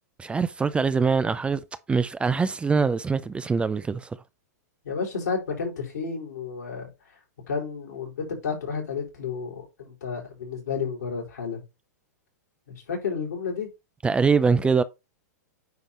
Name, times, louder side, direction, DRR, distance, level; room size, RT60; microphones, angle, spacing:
voice 1, 0.2-1.6 1.9-4.2 14.0-14.8, right 5 dB, 10° right, 0.4 m, -23 dB
voice 2, 4.8-6.9 7.5-11.6 12.7-13.7, left 5 dB, 80° left, 4.6 m, -31 dB
9.3 x 3.5 x 4.3 m
hypercardioid pair, 120°, 9 cm